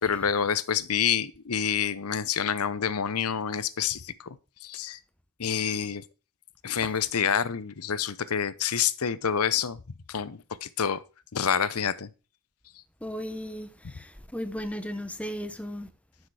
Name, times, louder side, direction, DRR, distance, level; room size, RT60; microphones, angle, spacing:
voice 1, 0.0-4.3 4.6-5.0 5.4-6.0 6.6-9.8 10.1-11.0 11.3-12.1, left 7 dB, 80° left, 0.7 m, -27 dB
voice 2, 13.0-15.9, equal, 5° left, 0.9 m, -36 dB
12.0 x 6.6 x 4.8 m
head